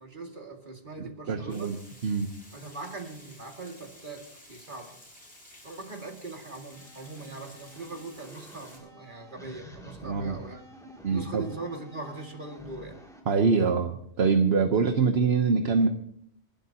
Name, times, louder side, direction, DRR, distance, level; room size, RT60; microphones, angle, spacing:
voice 1, 0.0-1.7 2.5-5.0 5.6-10.6 11.1-13.0, right 3 dB, 45° right, 2 dB, 2.4 m, -41 dB
voice 2, 1.3-1.8 2.0-2.3 10.0-10.4 11.0-11.4 13.3-15.9, right 5 dB, 65° right, 5 dB, 1.2 m, -24 dB
Water, 1.5-8.8, left 1 dB, 80° left, 7.2 m, -52 dB
sound 1, 6.7-13.2, equal, 5° left, 2.6 m, -49 dB
29.5 x 12.0 x 2.9 m, 0.69 s
omnidirectional pair, 1.2 m